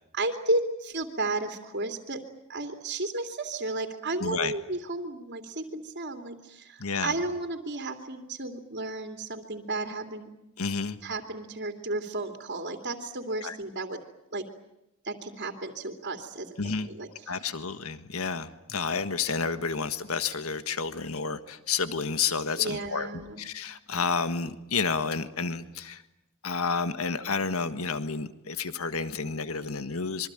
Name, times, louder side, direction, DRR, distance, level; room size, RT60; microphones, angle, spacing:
voice 1, 0.1-2.2 2.5-10.3 11.0-14.0 14.3-14.4 15.0-16.5 16.9-17.1 22.6-23.4, right 2 dB, 50° right, 4 dB, 2.8 m, -33 dB
voice 2, 4.2-4.5 6.8-7.1 10.6-11.0 13.4-13.6 16.6-16.9 17.3-23.1 23.4-26.0 26.4-30.3, left 5 dB, 80° left, 11 dB, 1.6 m, -30 dB
27.0 x 24.0 x 9.0 m, 0.84 s
head